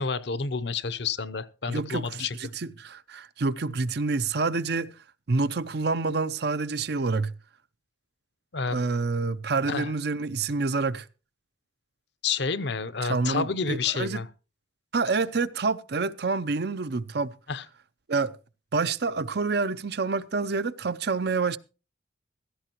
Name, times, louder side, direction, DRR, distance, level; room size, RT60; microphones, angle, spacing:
voice 1, 0.0-2.4 8.5-8.8 9.7-9.9 12.2-14.3 17.5-17.6, left 5 dB, 60° left, 0.7 m, -29 dB
voice 2, 1.7-4.9 5.3-7.3 8.7-11.1 13.0-14.2 14.9-17.3 18.1-18.3 18.7-21.6, right 4 dB, 55° right, 0.6 m, -27 dB
16.0 x 14.0 x 2.9 m
head